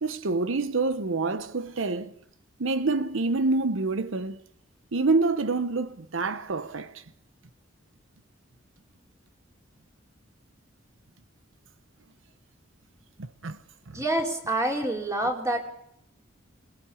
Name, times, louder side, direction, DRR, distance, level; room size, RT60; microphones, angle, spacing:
voice 1, 0.0-2.1 2.6-4.4 4.9-7.0 13.2-13.6 13.9-14.0, right 3 dB, 85° right, 0.9 m, -27 dB
voice 2, 13.9-15.6, right 1 dB, 15° right, 4.1 m, -27 dB
22.5 x 21.0 x 8.5 m
head